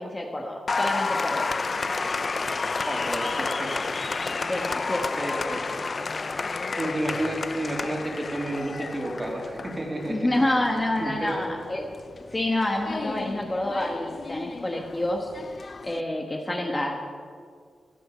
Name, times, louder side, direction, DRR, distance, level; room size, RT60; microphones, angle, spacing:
voice 1, 0.0-1.5 4.5-5.1 10.1-11.9 12.3-15.3 15.8-17.0, left 1 dB, 20° left, 1 dB, 1.4 m, -28 dB
Applause, 0.7-16.0, left 4 dB, 35° left, 0.6 m, -31 dB
voice 2, 2.9-3.7 5.2-5.6 6.8-11.5, right 1 dB, 20° right, 0 dB, 3.2 m, -31 dB
16.0 x 11.5 x 7.7 m, 2.1 s
wide cardioid pair, 135°, 0 cm